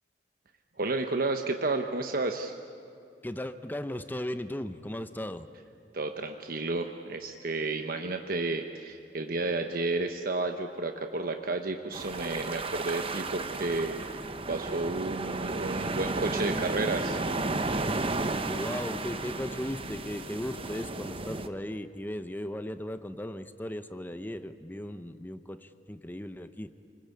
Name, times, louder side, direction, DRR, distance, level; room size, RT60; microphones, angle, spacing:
voice 1, 0.8-2.5 5.9-17.2, right 3 dB, 55° right, 5 dB, 1.1 m, -31 dB
voice 2, 3.2-5.5 17.9-18.1 18.4-26.7, left 1 dB, 10° left, 10 dB, 0.8 m, -37 dB
sound 1, 11.9-21.5, right 2 dB, 30° right, 1.0 m, -33 dB
29.5 x 20.0 x 8.5 m, 2.7 s
head